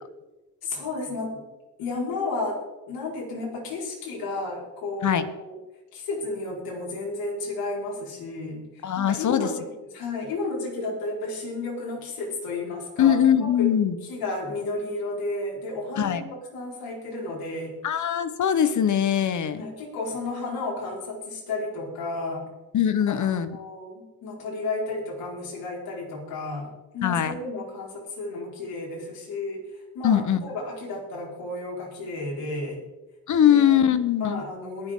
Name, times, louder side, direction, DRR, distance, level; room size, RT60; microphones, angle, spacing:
voice 1, 0.6-1.5 1.8-5.6 5.9-13.7 14.0-17.7 19.5-22.5 23.1-26.7 26.9-29.6 29.9-32.8 33.5-34.9, left 2 dB, 70° left, -3 dB, 4.9 m, -32 dB
voice 2, 8.8-9.5 13.0-13.9 16.0-16.2 17.8-19.6 22.7-23.5 27.0-27.4 30.0-30.4 33.3-34.4, left 9 dB, 50° left, 12 dB, 1.1 m, -21 dB
22.5 x 7.6 x 3.8 m, 1.1 s
supercardioid pair, 75°, 37 cm